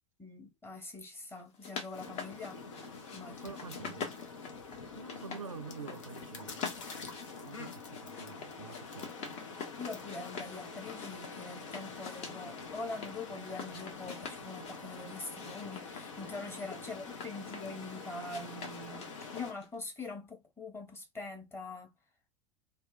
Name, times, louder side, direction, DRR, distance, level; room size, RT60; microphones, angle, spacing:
voice 1, 0.2-2.6 3.1-3.6 9.8-21.9, left 3 dB, 15° left, 1.0 m, -44 dB
sound 1, 1.4-3.2 3.5-5.4 5.7-6.2 6.5-10.5 10.9-13.1 13.5-14.8 15.3-17.8 18.2-19.7, left 5 dB, 40° left, 0.9 m, -45 dB
sound 2, 1.9-19.5, left 4 dB, 65° left, 0.7 m, -46 dB
voice 2, 3.4-4.2 4.5-6.7 7.4-9.1 16.7-16.8, right 5 dB, 85° right, 0.5 m, -47 dB
2.7 x 2.2 x 2.5 m
figure-of-eight pair, 80°, 17 cm